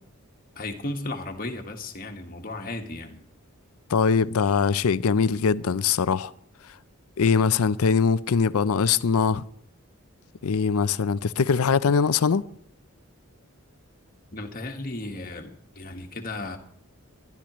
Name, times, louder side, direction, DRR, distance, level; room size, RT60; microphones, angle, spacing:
voice 1, 0.5-3.2 14.3-16.6, left 2 dB, 40° left, 1.6 m, -35 dB
voice 2, 3.9-6.3 7.2-9.4 10.4-12.4, left 5 dB, 85° left, 0.5 m, -22 dB
22.5 x 11.5 x 3.1 m
head